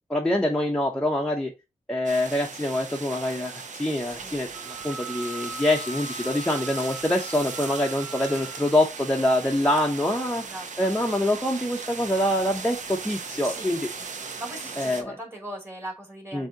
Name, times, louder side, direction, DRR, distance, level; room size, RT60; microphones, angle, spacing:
voice 1, 0.1-1.5 1.9-3.5 3.8-10.4 10.8-13.8 14.8-15.2 16.3-16.5, left 1 dB, 5° left, 0 dB, 0.7 m, -25 dB
sound 1, 2.0-15.0, right 5 dB, 65° right, 0.7 m, -38 dB
voice 2, 4.0-4.4 10.4-10.9 13.4-13.7 14.0-14.1 14.4-16.5, right 1 dB, 20° right, -1 dB, 2.6 m, -39 dB
Wind instrument woodwind instrument, 4.5-8.8, right 1 dB, 35° right, 1.7 m, -41 dB
7.1 x 2.7 x 2.7 m, 0.24 s
cardioid pair, 70°, 13 cm